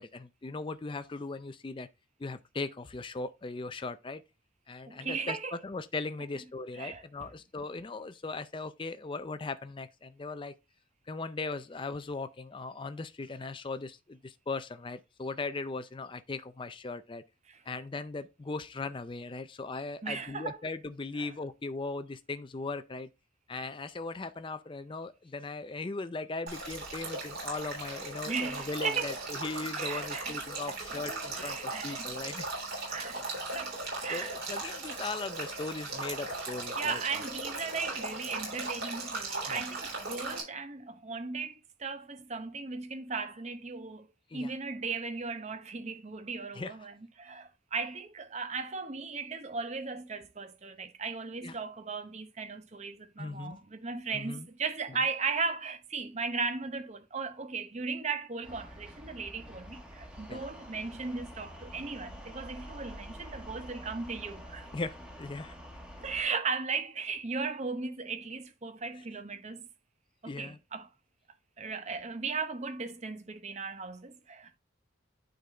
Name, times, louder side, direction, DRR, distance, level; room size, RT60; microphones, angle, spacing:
voice 1, 0.0-1.9 2.2-4.2 4.7-10.5 11.1-17.2 17.7-23.1 23.5-32.5 34.1-37.0 39.5-39.6 44.3-44.5 46.5-46.7 51.4-51.5 53.2-53.6 54.1-54.5 60.3-60.4 64.7-65.5 70.3-70.6, left 3 dB, 25° left, 0.4 m, -38 dB
voice 2, 4.9-5.6 6.7-7.0 17.5-17.6 20.0-20.6 21.2-21.3 28.3-29.1 29.8-30.4 30.7-30.8 31.4-32.1 32.6-34.4 36.8-44.1 44.3-64.7 66.0-69.7 70.2-70.9 71.6-74.6, right 4 dB, 35° right, 0.7 m, -37 dB
Male speech man speaking / Stream / Trickle dribble, 26.5-40.4, right 3 dB, 50° right, 3.4 m, -38 dB
sound 1, 58.4-66.2, equal, 5° right, 1.2 m, -47 dB
9.4 x 3.9 x 3.3 m
head